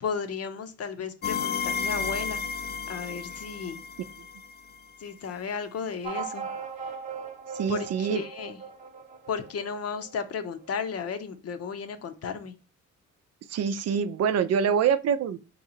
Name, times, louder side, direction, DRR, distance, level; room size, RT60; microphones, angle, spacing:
voice 1, 0.0-2.4 2.9-3.8 5.0-6.5 7.7-8.6 9.3-12.5, left 6 dB, 55° left, 0.7 m, -34 dB
sound 1, 1.2-5.0, left 5 dB, 35° left, 0.4 m, -32 dB
sound 2, 6.0-11.0, right 6 dB, 25° right, 1.0 m, -39 dB
voice 2, 7.5-8.2 13.5-15.4, right 7 dB, 55° right, 0.5 m, -25 dB
4.0 x 3.0 x 3.9 m
cardioid pair, 90°, 30 cm